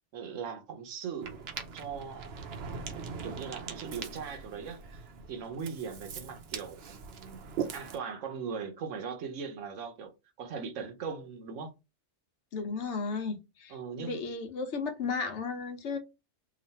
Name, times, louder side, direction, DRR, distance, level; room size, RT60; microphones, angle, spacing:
voice 1, 0.1-1.4 1.7-2.3 3.2-7.4 7.7-10.1 10.4-11.7 13.7-14.2, right 6 dB, 85° right, 1.1 m, -39 dB
Ocean, 1.2-8.0, right 6 dB, 65° right, 0.8 m, -41 dB
voice 2, 12.5-16.0, left 4 dB, 75° left, 1.0 m, -34 dB
3.0 x 2.5 x 4.1 m
omnidirectional pair, 1.2 m